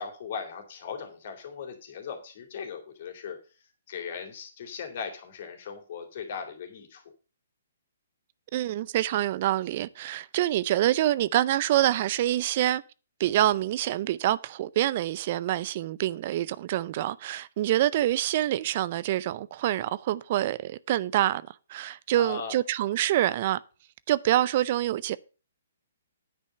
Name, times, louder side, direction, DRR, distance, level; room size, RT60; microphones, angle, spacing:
voice 1, 0.0-3.4 3.9-7.0 22.1-22.6, left 6 dB, 50° left, 3.0 m, -38 dB
voice 2, 8.5-12.8 13.2-23.6 24.1-25.2, right 13 dB, 45° right, 0.5 m, -26 dB
9.6 x 5.5 x 6.5 m
hypercardioid pair, 135°, 0 cm